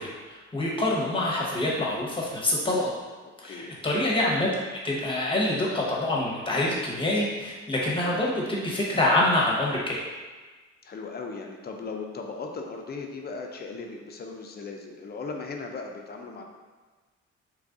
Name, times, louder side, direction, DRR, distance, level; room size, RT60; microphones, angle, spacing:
voice 1, 0.0-2.9 3.4-4.5 4.8-10.0, left 1 dB, 15° left, -4 dB, 1.0 m, -26 dB
voice 2, 3.4-3.7 10.8-16.4, left 4 dB, 35° left, 2 dB, 0.5 m, -37 dB
3.1 x 2.5 x 3.6 m, 1.3 s
cardioid pair, 90°, 30 cm